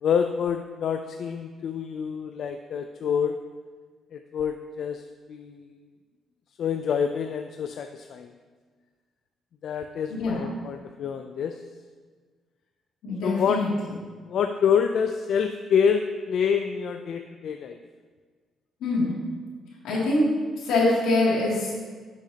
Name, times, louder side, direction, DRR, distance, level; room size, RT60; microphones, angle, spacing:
voice 1, 0.0-3.4 4.1-5.0 5.3-5.8 6.6-8.4 9.6-11.5 13.2-13.7 14.3-17.8, left 7 dB, 65° left, 7 dB, 0.3 m, -27 dB
voice 2, 13.0-13.7 18.8-19.2 19.8-20.3 20.6-21.8, left 2 dB, 85° left, -5 dB, 2.4 m, -24 dB
9.7 x 6.5 x 2.8 m, 1.5 s
cardioid pair, 90°, 0 cm